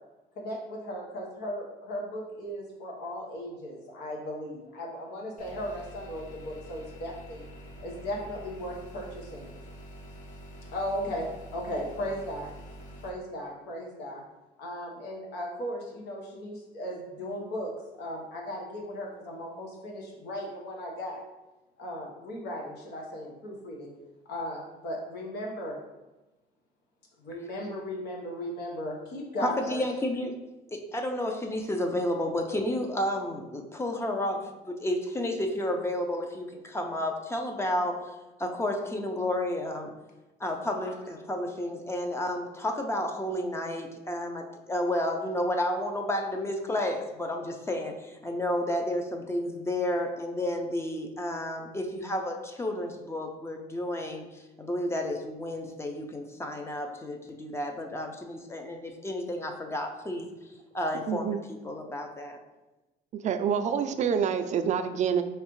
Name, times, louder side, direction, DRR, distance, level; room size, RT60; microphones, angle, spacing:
voice 1, 0.4-7.4 7.8-9.5 10.7-12.5 13.0-14.2 14.6-17.7 18.0-21.2 21.8-23.9 24.2-25.8 27.2-29.8, equal, 80° left, -1 dB, 1.1 m, -36 dB
sound 1, 5.4-13.1, equal, 50° left, 0.9 m, -46 dB
voice 2, 29.4-30.3 30.7-38.0 38.4-39.9 40.4-60.3 60.7-62.4, left 1 dB, 15° left, 3 dB, 0.5 m, -31 dB
voice 3, 61.1-61.4 63.1-65.2, right 7 dB, 45° right, 9 dB, 0.4 m, -27 dB
4.7 x 3.2 x 3.1 m, 1.1 s
cardioid pair, 110°, 17 cm